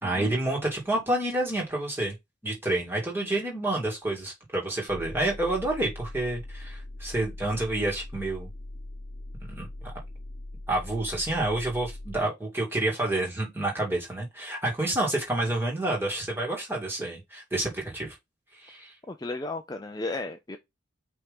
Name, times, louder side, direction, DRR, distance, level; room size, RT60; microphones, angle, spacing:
voice 1, 0.0-2.1 2.4-8.5 9.5-9.9 10.7-18.2 18.5-18.9, right 2 dB, 10° right, 2.4 m, -29 dB
sound 1, 4.9-12.2, left 1 dB, 50° left, 1.0 m, -41 dB
voice 2, 19.1-20.6, left 2 dB, 20° left, 0.5 m, -34 dB
5.6 x 3.6 x 5.3 m
head